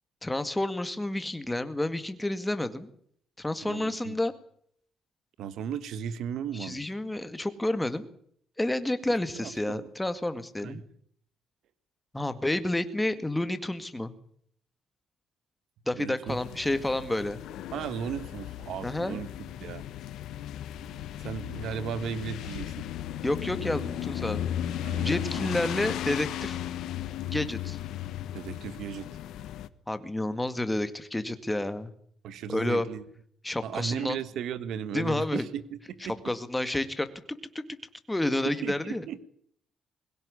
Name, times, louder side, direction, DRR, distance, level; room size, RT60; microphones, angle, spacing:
voice 1, 0.2-2.9 3.4-4.3 6.6-8.1 8.6-10.8 12.1-14.1 15.9-17.4 18.8-19.2 23.2-24.5 25.0-26.6 27.3-27.8 29.9-31.9 32.5-32.9 33.4-34.2 34.9-35.5 36.2-37.1 38.1-39.0, left 1 dB, 10° left, 10 dB, 2.0 m, -30 dB
voice 2, 3.6-4.2 5.4-6.9 9.3-9.9 10.6-10.8 16.0-16.4 17.7-19.3 19.6-19.8 21.2-22.8 24.8-25.6 28.3-29.2 32.2-33.0 33.6-35.8 36.1-36.2 38.5-39.2, right 8 dB, 75° right, 15 dB, 1.7 m, -36 dB
sound 1, 16.3-29.7, left 11 dB, 85° left, 1.2 m, -35 dB
22.5 x 16.5 x 9.8 m, 0.65 s
cardioid pair, 135°, 0 cm